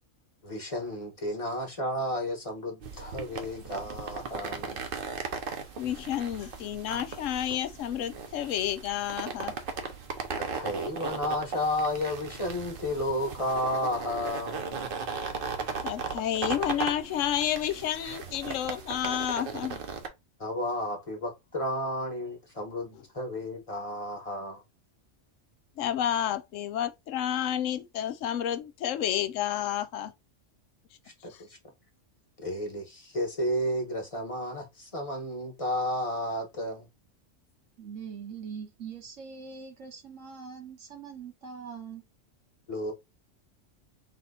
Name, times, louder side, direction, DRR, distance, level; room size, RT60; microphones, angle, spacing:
voice 1, 0.4-4.8 10.5-14.9 20.4-24.6 31.2-31.3 32.4-36.9 42.7-42.9, left 1 dB, 30° left, 1.2 m, -32 dB
sound 1, 2.8-20.1, right 5 dB, 50° right, 0.9 m, -37 dB
voice 2, 5.8-9.5 15.8-19.8 25.8-30.1 31.3-31.4, left 10 dB, 90° left, 1.0 m, -30 dB
voice 3, 37.8-42.0, right 6 dB, 80° right, 1.6 m, -42 dB
4.0 x 2.9 x 4.1 m
omnidirectional pair, 1.3 m